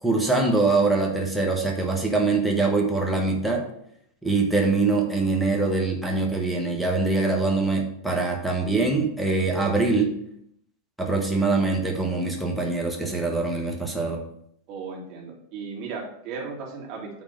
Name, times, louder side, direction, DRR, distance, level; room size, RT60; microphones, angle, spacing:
voice 1, 0.0-3.6 4.2-10.1 11.0-14.2, right 3 dB, ahead, -1 dB, 1.3 m, -23 dB
voice 2, 14.7-17.1, right 5 dB, 40° right, -2 dB, 2.2 m, -36 dB
8.7 x 3.5 x 5.2 m, 0.69 s
figure-of-eight pair, 90°, 0 cm